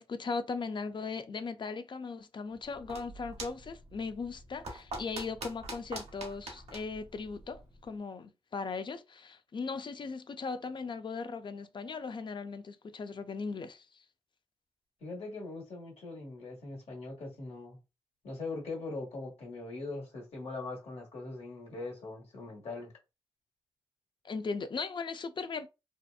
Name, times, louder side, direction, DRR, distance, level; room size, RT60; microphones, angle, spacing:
voice 1, 0.0-14.0 24.2-25.7, left 4 dB, 50° left, 0.4 m, -38 dB
sound 1, 2.5-7.9, right 2 dB, 90° right, 0.8 m, -45 dB
voice 2, 15.0-17.8 18.2-22.9, left 3 dB, 80° left, 1.1 m, -41 dB
2.8 x 2.2 x 2.3 m
cardioid pair, 55°, 10 cm